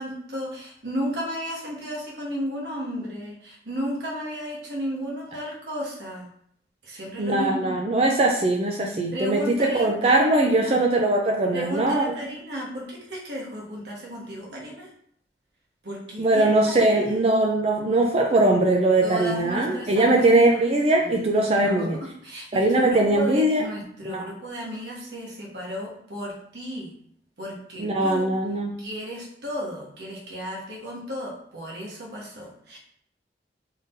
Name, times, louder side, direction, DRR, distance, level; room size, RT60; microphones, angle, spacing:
voice 1, 0.0-6.3 6.8-7.7 9.1-10.8 11.5-14.9 15.8-16.5 16.9-17.2 19.0-20.5 21.1-21.2 21.6-26.9 27.4-28.3 28.8-32.8, equal, 75° right, -3 dB, 1.2 m, -33 dB
voice 2, 7.2-12.1 16.2-22.0 22.5-23.7 24.0-24.3 27.8-28.8, right 2 dB, 35° right, 1 dB, 0.4 m, -21 dB
3.9 x 3.6 x 2.6 m, 0.66 s
head